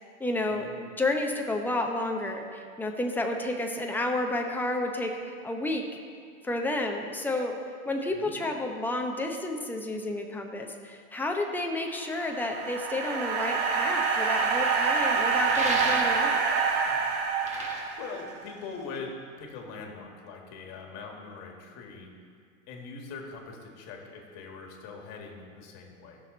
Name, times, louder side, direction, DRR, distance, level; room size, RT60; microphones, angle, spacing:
voice 1, 0.2-6.0 6.4-7.6 7.9-16.5, left 2 dB, 5° left, 2 dB, 0.8 m, -31 dB
voice 2, 8.1-8.4 16.8-17.0 17.5-22.1 22.7-26.2, left 4 dB, 40° left, 1 dB, 1.9 m, -42 dB
sound 1, 12.0-18.4, right 5 dB, 55° right, 1.4 m, -27 dB
sound 2, 15.5-16.5 17.2-19.0, right 1 dB, 20° right, 1.5 m, -35 dB
15.5 x 6.3 x 4.0 m, 2.1 s
hypercardioid pair, 125°, 39 cm